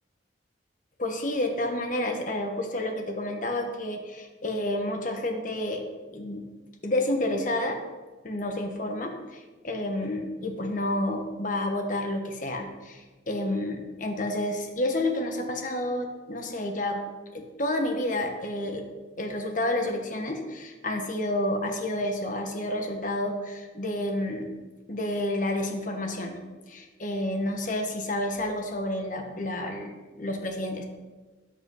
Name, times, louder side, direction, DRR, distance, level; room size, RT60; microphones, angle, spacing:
voice 1, 1.0-5.8 6.1-6.4 6.8-7.8 8.2-17.0 17.3-18.8 19.2-24.5 24.9-26.4 26.7-30.8, left 1 dB, 45° left, 4 dB, 1.5 m, -30 dB
13.5 x 8.4 x 4.0 m, 1.3 s
head